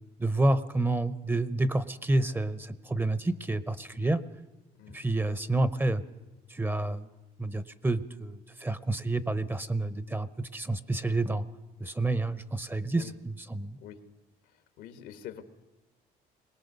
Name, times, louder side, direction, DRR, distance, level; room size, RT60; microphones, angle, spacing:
voice 1, 0.2-4.2 4.9-6.0 6.5-7.1 7.4-11.4 11.8-13.8, right 2 dB, 10° right, 15 dB, 0.8 m, -29 dB
voice 2, 13.8-14.1 14.4-15.4, left 10 dB, 90° left, 9 dB, 1.7 m, -46 dB
22.0 x 19.0 x 6.7 m, 1.0 s
cardioid pair, 110°, 17 cm